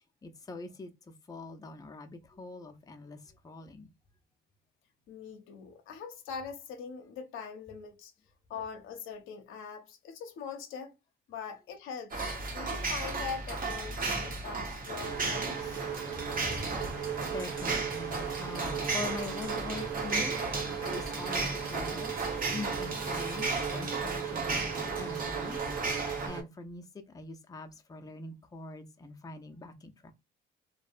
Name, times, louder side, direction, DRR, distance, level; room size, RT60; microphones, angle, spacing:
voice 1, 0.2-3.9 16.1-22.1 22.5-25.6 26.3-30.1, left 2 dB, 20° left, 0.5 m, -43 dB
voice 2, 5.1-8.1 8.5-10.9 11.3-15.9, left 6 dB, 85° left, 0.6 m, -42 dB
sound 1, 12.1-26.3, right 3 dB, 45° right, 0.8 m, -35 dB
sound 2, 15.0-26.4, right 7 dB, 75° right, 0.9 m, -37 dB
2.6 x 2.0 x 2.4 m
cardioid pair, 90°, 20 cm